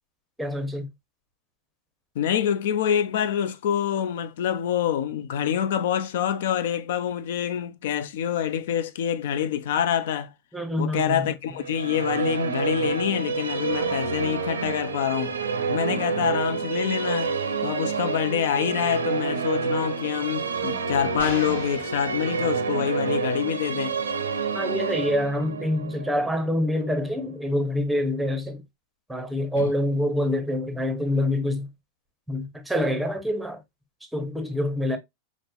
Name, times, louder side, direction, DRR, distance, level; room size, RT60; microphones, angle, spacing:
voice 1, 0.4-0.9 10.5-11.3 24.5-28.6 29.1-31.7 32.3-33.6 34.1-35.0, left 1 dB, 5° right, 0.7 m, -26 dB
voice 2, 2.2-10.3 10.8-15.4 15.7-17.3 17.6-24.0 29.6-29.7, left 9 dB, 55° left, 0.3 m, -26 dB
Musical instrument, 11.6-27.0, right 5 dB, 70° right, 0.6 m, -29 dB
sound 1, 21.2-22.9, left 1 dB, 75° left, 1.3 m, -40 dB
5.2 x 2.1 x 2.3 m
figure-of-eight pair, 90°, 0 cm